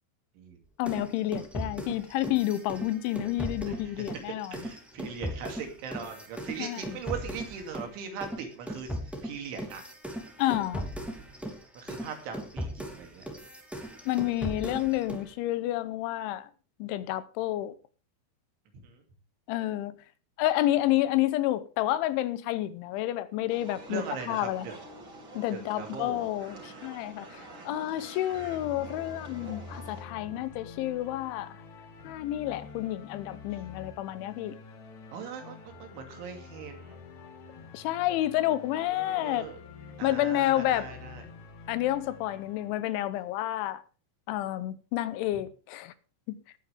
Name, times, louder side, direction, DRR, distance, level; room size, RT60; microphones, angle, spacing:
voice 1, 0.8-4.7 6.6-7.0 10.4-10.9 14.1-16.5 16.8-17.7 19.5-20.0 20.4-24.7 25.4-27.3 27.7-31.6 32.0-34.6 37.7-39.5 40.0-40.9 41.7-43.8 44.3-45.9 46.3-46.4, left 14 dB, 85° left, 3.2 m, -29 dB
sound 1, 0.8-7.9 8.2-15.3, equal, ahead, 0.8 m, -38 dB
voice 2, 3.7-4.1 4.5-8.9 9.2-9.8 11.8-13.2 18.8-19.0 23.9-24.7 25.5-26.3 35.1-37.0 38.9-39.6 40.0-41.2 45.3-45.4, right 6 dB, 80° right, 5.0 m, -40 dB
sound 2, 23.5-30.0, right 2 dB, 30° right, 3.3 m, -47 dB
sound 3, 28.3-42.8, left 4 dB, 55° left, 2.3 m, -47 dB
19.5 x 9.1 x 3.5 m
omnidirectional pair, 5.4 m